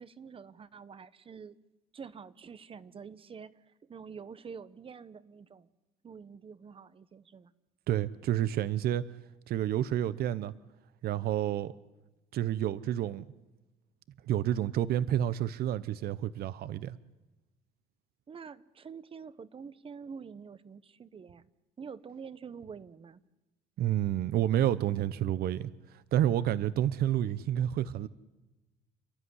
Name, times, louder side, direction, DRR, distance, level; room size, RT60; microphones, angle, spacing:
voice 1, 0.0-1.6 1.9-5.7 6.0-7.5 18.3-21.5 21.8-23.2, right 6 dB, 30° right, 1.0 m, -47 dB
voice 2, 7.9-9.0 9.5-10.5 11.0-11.7 12.3-13.2 14.3-17.0 23.8-28.1, right 11 dB, 65° right, 0.8 m, -29 dB
29.0 x 13.0 x 9.7 m
cardioid pair, 110°, 17 cm